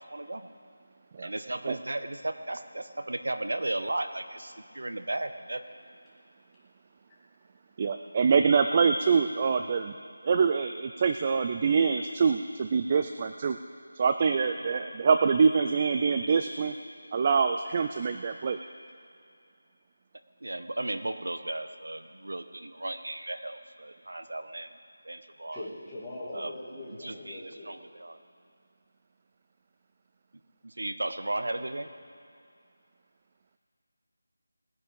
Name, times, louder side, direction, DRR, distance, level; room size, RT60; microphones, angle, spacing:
voice 1, 0.1-0.5 1.2-5.6 14.6-14.7 20.4-24.7 25.0-25.6 26.3-28.2 30.6-31.9, right 2 dB, 85° right, 10 dB, 0.8 m, -35 dB
voice 2, 7.8-9.9 10.2-13.6 14.0-16.7 17.1-18.6, right 5 dB, 25° right, 8 dB, 0.3 m, -25 dB
voice 3, 25.5-27.8 31.4-31.6, left 1 dB, 10° left, -10 dB, 2.4 m, -41 dB
19.5 x 9.6 x 5.3 m, 2.3 s
figure-of-eight pair, 170°, 0 cm